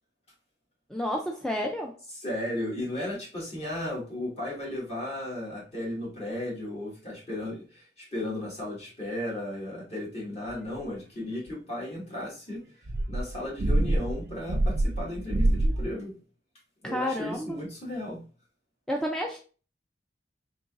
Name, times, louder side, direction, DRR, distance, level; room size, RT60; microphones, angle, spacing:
voice 1, 0.9-1.9 16.8-17.6 18.9-19.4, equal, 5° left, 1 dB, 0.4 m, -30 dB
voice 2, 2.1-12.6 13.1-16.1 16.8-18.2, left 1 dB, 35° left, -4 dB, 1.9 m, -35 dB
sound 1, 11.0-11.1 12.9-15.9, right 1 dB, 55° right, 0.5 m, -26 dB
3.9 x 3.8 x 2.5 m, 0.36 s
head